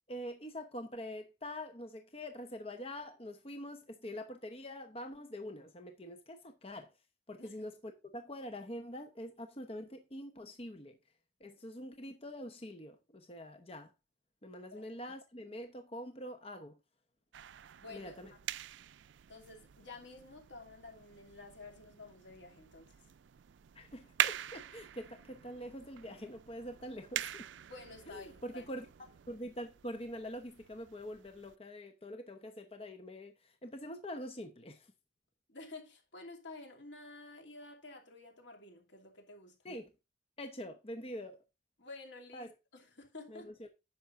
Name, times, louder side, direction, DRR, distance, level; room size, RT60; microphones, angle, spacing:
voice 1, 0.1-6.9 7.3-11.0 11.4-13.9 14.4-16.7 17.9-18.3 23.7-27.4 28.1-28.9 29.3-34.9 39.6-39.9 40.4-41.4 42.3-42.5 43.3-43.7, equal, 35° left, 1.0 m, -45 dB
sound 1, 17.3-31.6, right 11 dB, 90° right, 0.4 m, -43 dB
voice 2, 17.8-18.1 19.3-23.0 27.7-28.6 35.5-39.6 41.8-43.5, left 3 dB, 85° left, 2.8 m, -51 dB
10.5 x 7.3 x 2.6 m
head